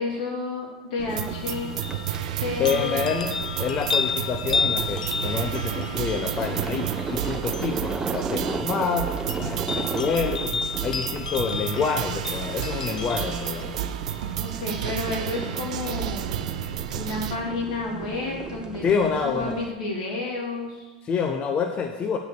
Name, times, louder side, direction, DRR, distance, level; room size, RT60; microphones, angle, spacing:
voice 1, 0.0-1.7 2.4-3.2 14.4-16.3 16.9-20.9, left 3 dB, 70° left, -2 dB, 3.1 m, -31 dB
sound 1, 1.0-19.7, right 4 dB, 20° right, 0.6 m, -36 dB
sound 2, 1.1-16.1 16.6-16.7, left 5 dB, 85° left, 0.5 m, -33 dB
sound 3, 1.1-17.4, right 11 dB, 70° right, 0.5 m, -32 dB
voice 2, 2.6-9.1 9.4-13.9 18.8-19.6 21.0-22.2, left 6 dB, 30° left, 5 dB, 0.7 m, -27 dB
8.2 x 6.5 x 6.8 m, 1.2 s
hypercardioid pair, 90°, 4 cm